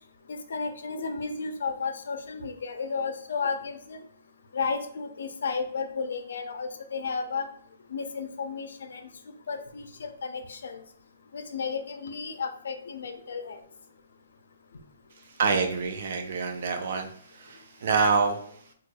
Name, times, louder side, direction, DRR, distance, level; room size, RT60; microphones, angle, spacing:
voice 1, 0.3-4.0 4.5-7.5 7.9-9.1 9.5-10.8 11.3-13.6, left 5 dB, 75° left, 7 dB, 0.5 m, -33 dB
voice 2, 15.4-17.1 17.4-18.4, right 5 dB, 50° right, 5 dB, 0.4 m, -26 dB
4.3 x 2.3 x 2.2 m, 0.64 s
hypercardioid pair, 170°, 0 cm